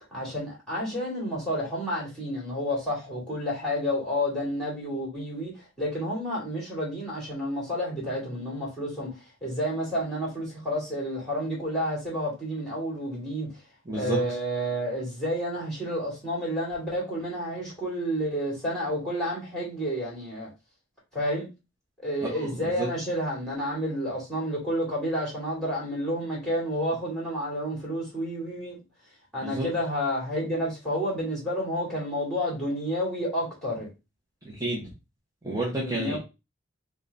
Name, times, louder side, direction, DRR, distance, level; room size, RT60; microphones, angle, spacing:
voice 1, 0.1-13.5 13.9-20.5 21.1-21.5 22.0-28.8 29.3-33.9 35.7-36.2, equal, 5° left, 2.3 m, -30 dB
voice 2, 13.9-14.2 22.3-22.9 29.4-29.7 34.4-34.9 35.4-36.2, right 2 dB, 20° right, 0.8 m, -30 dB
3.7 x 2.3 x 3.9 m
head